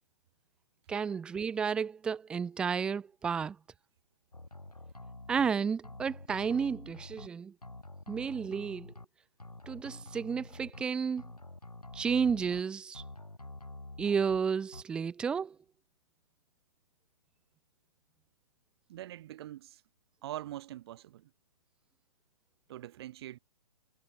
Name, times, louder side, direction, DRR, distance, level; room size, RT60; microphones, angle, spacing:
voice 1, 0.9-3.6 5.3-7.5 8.1-8.9 9.7-11.2 11.9-13.0 14.0-15.6, right 6 dB, 5° right, 0.3 m, -32 dB
sound 1, 4.3-5.5 5.8-7.3 7.6-9.0 9.4-10.8 11.2-12.6 12.9-14.4 14.7-14.8, left 2 dB, 90° left, 6.5 m, -47 dB
voice 2, 18.9-19.8 20.2-21.3 22.7-23.4, right 13 dB, 45° right, 3.3 m, -43 dB
figure-of-eight pair, 125°, 19 cm